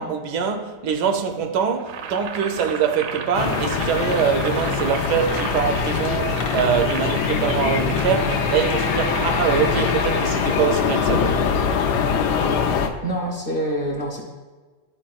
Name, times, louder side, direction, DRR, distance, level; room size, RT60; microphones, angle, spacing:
voice 1, 0.0-11.4, right 7 dB, 90° right, 1.2 m, -23 dB
Boiling, 1.8-11.2, right 6 dB, 70° right, 0.8 m, -35 dB
sound 1, 3.3-12.9, left 6 dB, 85° left, 1.2 m, -23 dB
sound 2, 5.1-7.1 7.7-8.2 8.5-9.8 10.1-10.2, left 4 dB, 70° left, 1.3 m, -39 dB
voice 2, 13.0-14.2, right 1 dB, 45° left, 0.8 m, -26 dB
10.0 x 4.1 x 2.3 m
omnidirectional pair, 1.7 m